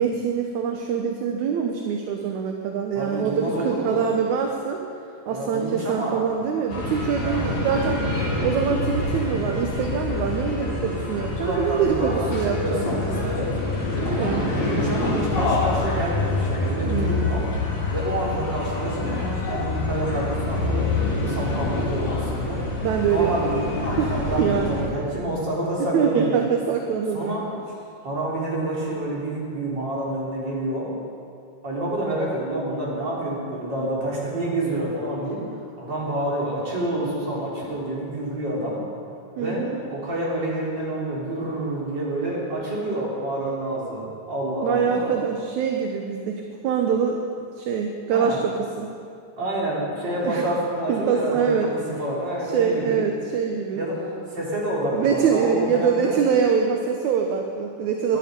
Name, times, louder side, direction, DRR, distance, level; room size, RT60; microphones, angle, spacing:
voice 1, 0.0-4.8 5.3-8.0 8.4-13.4 14.0-14.6 16.9-17.6 22.8-23.6 24.0-24.1 24.4-24.8 25.9-27.4 39.4-39.8 44.6-47.2 47.6-48.9 50.2-50.4 50.9-51.7 52.5-53.8 54.9-58.2, right 6 dB, 70° right, 3 dB, 2.1 m, -24 dB
voice 2, 2.9-4.1 5.3-6.3 7.2-7.6 9.0-9.3 11.4-13.6 14.1-17.5 17.9-20.9 21.2-22.6 23.1-26.5 27.1-27.5 28.0-30.9 31.6-35.4 35.8-38.8 39.4-45.1 48.1-48.4 49.4-53.0 53.7-56.2 58.1-58.2, right 1 dB, 30° right, -6 dB, 4.3 m, -28 dB
sound 1, 6.7-24.9, left 2 dB, 85° left, 4.9 m, -26 dB
21.0 x 11.5 x 5.3 m, 2.4 s
omnidirectional pair, 3.9 m